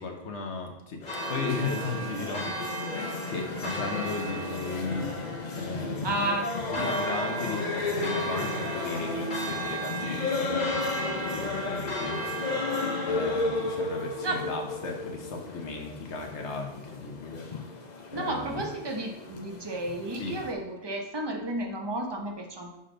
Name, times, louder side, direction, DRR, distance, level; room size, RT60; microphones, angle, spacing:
voice 1, 0.0-2.5 2.9-5.1 5.6-6.4 6.7-12.8 13.1-17.5 18.1-18.6 20.2-20.4, left 4 dB, 75° left, 3 dB, 1.2 m, -36 dB
sound 1, 1.0-20.5, left 3 dB, 45° left, 0.7 m, -33 dB
Church bell, 1.1-15.1, right 2 dB, 25° left, 1.7 m, -37 dB
voice 2, 6.0-6.5 6.8-6.9 14.2-14.5 18.1-22.8, right 1 dB, 25° right, 1 dB, 0.7 m, -32 dB
6.5 x 4.0 x 3.9 m, 0.90 s
omnidirectional pair, 1.2 m